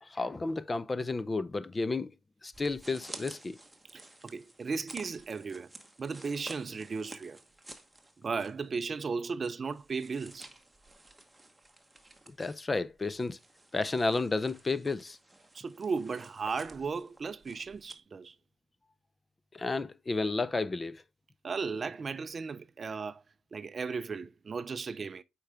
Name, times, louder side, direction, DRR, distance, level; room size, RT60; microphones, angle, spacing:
voice 1, 0.0-2.1 2.4-3.6 12.3-13.4 13.7-15.2 19.5-21.0, left 3 dB, 25° left, 0.5 m, -32 dB
sound 1, 2.5-8.7 9.0-9.1 9.7-18.0, right 2 dB, 10° right, 1.1 m, -52 dB
voice 2, 3.9-5.7 6.0-7.4 8.2-10.5 15.5-18.3 21.4-23.2 23.5-25.2, right 4 dB, 40° right, 0.5 m, -36 dB
8.5 x 4.6 x 3.3 m
cardioid pair, 90°, 0 cm